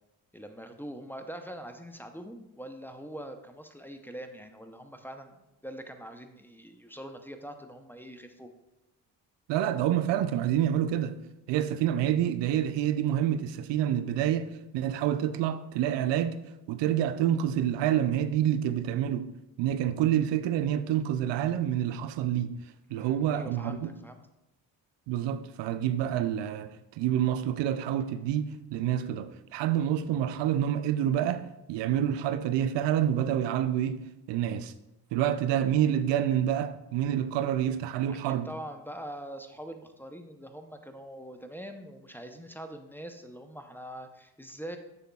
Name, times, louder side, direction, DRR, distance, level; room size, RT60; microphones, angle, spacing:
voice 1, 0.3-8.5 22.9-24.2 38.2-44.8, right 1 dB, 5° left, 0.6 m, -43 dB
voice 2, 9.5-11.2 11.5-16.4 16.7-19.3 19.6-22.5 22.9-23.9 25.1-34.7 35.1-38.5, right 10 dB, 75° right, 0.5 m, -28 dB
7.3 x 6.4 x 2.3 m
supercardioid pair, 50°, 43 cm